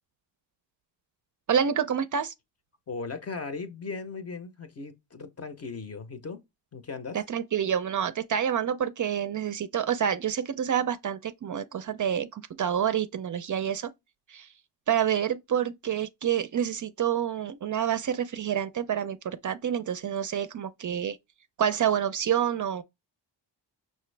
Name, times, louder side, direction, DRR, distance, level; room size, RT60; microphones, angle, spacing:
voice 1, 1.5-2.3 7.1-13.9 14.3-14.5 14.9-21.2 21.6-22.8, right 9 dB, 45° right, 0.4 m, -28 dB
voice 2, 2.9-6.4 6.7-7.2, left 4 dB, 35° left, 0.7 m, -37 dB
5.8 x 2.6 x 3.2 m
cardioid pair, 110°, 44 cm